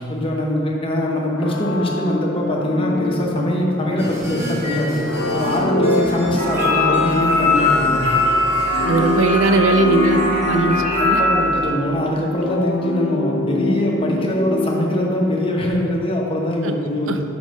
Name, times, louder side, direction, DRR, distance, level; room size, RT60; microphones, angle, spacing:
voice 1, 0.0-5.0 5.3-8.2 10.5-10.7 11.0-17.2, left 1 dB, 25° left, -2 dB, 1.0 m, -22 dB
sound 1, 1.3-15.9, left 1 dB, 70° left, 0.7 m, -25 dB
sound 2, 4.0-6.7 6.9-9.2, left 1 dB, 15° right, 1.5 m, -31 dB
sound 3, 6.4-11.6, left 2 dB, 35° right, 1.6 m, -20 dB
voice 2, 8.9-10.8 11.0-11.2 16.6-16.7 17.1-17.2, right 3 dB, 75° right, 7 dB, 0.5 m, -19 dB
5.5 x 5.2 x 6.2 m, 2.6 s
head